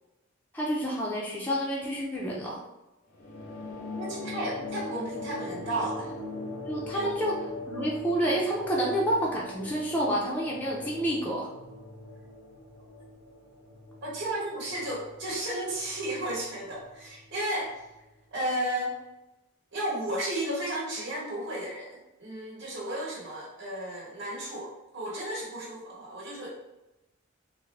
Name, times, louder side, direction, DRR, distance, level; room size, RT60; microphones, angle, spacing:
voice 1, 0.5-2.6 6.6-7.4 7.7-11.5, right 1 dB, 10° left, -5 dB, 0.4 m, -29 dB
sound 1, 3.1-18.0, left 2 dB, 75° left, 0.7 m, -41 dB
voice 2, 3.9-6.1 6.9-7.1 14.0-17.8 18.3-18.9 19.7-26.5, right 1 dB, 60° right, -6 dB, 1.0 m, -33 dB
3.6 x 2.0 x 3.2 m, 1.0 s
head